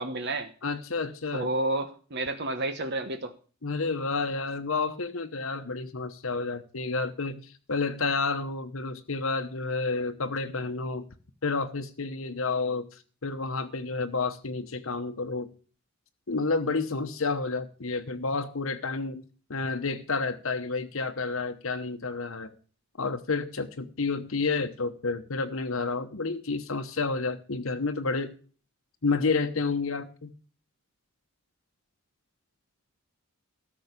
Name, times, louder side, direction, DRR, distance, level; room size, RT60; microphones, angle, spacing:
voice 1, 0.0-0.5 1.3-3.3, right 2 dB, 50° right, 8 dB, 1.2 m, -30 dB
voice 2, 0.6-1.5 3.6-11.0 11.4-15.5 16.3-19.2 19.5-22.5 23.0-28.3 29.0-30.3, left 4 dB, 70° left, 6 dB, 1.0 m, -30 dB
13.5 x 6.4 x 8.3 m, 0.39 s
head